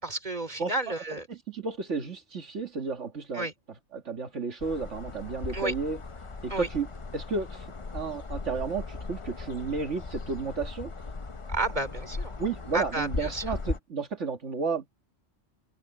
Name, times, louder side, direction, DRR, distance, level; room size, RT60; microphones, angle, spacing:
voice 1, 0.0-1.3 3.3-3.5 5.5-5.7 6.5-6.7 11.5-12.3 12.7-13.4, right 2 dB, 35° right, 3.2 m, -31 dB
voice 2, 0.6-1.0 1.3-3.5 3.9-6.0 6.4-6.9 7.1-7.7 7.9-10.9 12.4-14.9, right 4 dB, 75° right, 2.1 m, -32 dB
sound 1, 4.6-13.8, left 3 dB, 30° left, 0.8 m, -38 dB
omnidirectional pair, 1.2 m